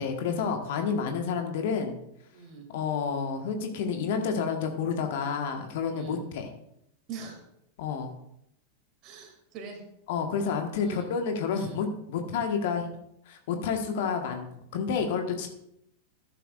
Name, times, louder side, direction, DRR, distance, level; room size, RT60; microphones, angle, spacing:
voice 1, 0.0-2.0 2.7-6.5 7.8-8.1 10.1-12.9 13.3-14.5 14.7-15.5, left 6 dB, 55° left, 4 dB, 1.5 m, -29 dB
voice 2, 2.3-2.7 5.9-6.2 7.1-7.5 9.0-9.8 10.8-11.1 11.5-11.8, right 5 dB, 35° right, 3 dB, 2.7 m, -42 dB
14.0 x 11.0 x 2.5 m, 0.76 s
figure-of-eight pair, 90°, 0 cm